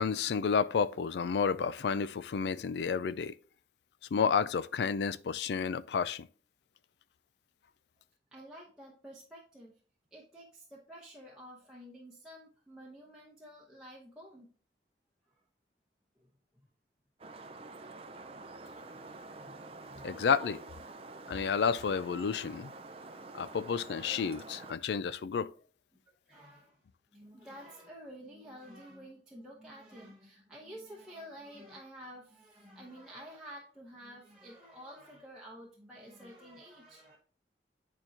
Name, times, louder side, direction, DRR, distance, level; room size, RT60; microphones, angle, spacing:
voice 1, 0.0-3.4 4.1-6.3 20.0-20.6 21.3-22.7 23.3-25.5, left 6 dB, 75° left, 0.4 m, -31 dB
voice 2, 8.3-9.7 10.1-14.5 16.2-16.3 18.9-19.1 19.4-20.1 26.3-26.8 27.1-37.2, equal, 5° right, 0.9 m, -50 dB
sound 1, 17.2-24.7, right 3 dB, 30° right, 0.5 m, -48 dB
8.8 x 4.4 x 2.8 m
head